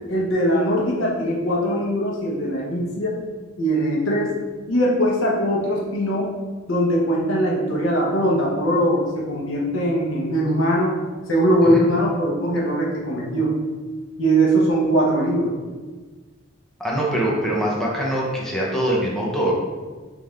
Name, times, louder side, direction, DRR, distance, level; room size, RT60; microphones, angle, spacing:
voice 1, 0.1-3.2 3.6-4.3 4.7-6.3 6.7-10.9 11.3-13.5 14.2-15.5, right 1 dB, 75° left, -3 dB, 1.0 m, -21 dB
voice 2, 16.8-19.5, right 1 dB, ahead, -5 dB, 0.6 m, -23 dB
3.7 x 3.4 x 3.2 m, 1.4 s
head